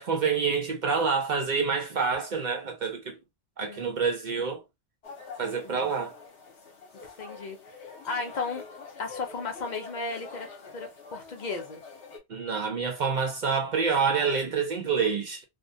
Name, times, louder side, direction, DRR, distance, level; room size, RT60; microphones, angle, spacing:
voice 1, 0.0-3.2 3.6-4.6 5.4-6.2 12.3-15.4, right 5 dB, 55° right, 0.6 m, -27 dB
sound 1, 5.0-12.2, left 4 dB, 75° left, 1.0 m, -45 dB
voice 2, 7.2-7.8 8.0-8.7 9.0-10.5 10.7-11.8, left 4 dB, 55° left, 0.6 m, -35 dB
2.5 x 2.1 x 2.5 m
omnidirectional pair, 1.1 m